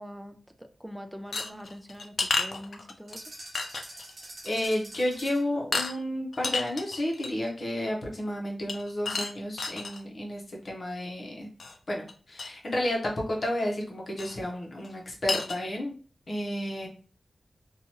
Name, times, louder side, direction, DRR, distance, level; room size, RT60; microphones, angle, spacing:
voice 1, 0.0-3.2, equal, 10° right, 7 dB, 0.3 m, -43 dB
sound 1, 1.3-3.2 3.5-4.1 4.5-4.6 4.9-5.2 5.7-5.9 6.3-7.4 8.7-10.0 11.6-11.8 12.1-12.2 12.4-12.5 14.2-14.4 14.8-14.9 15.3-15.6, left 3 dB, 70° left, 0.4 m, -31 dB
sound 2, 3.1-5.6, right 1 dB, 60° right, 0.8 m, -45 dB
voice 2, 4.4-11.5 11.9-15.9 16.3-16.9, left 1 dB, 50° left, -1 dB, 0.8 m, -31 dB
2.9 x 2.3 x 2.8 m, 0.39 s
wide cardioid pair, 100°, 0 cm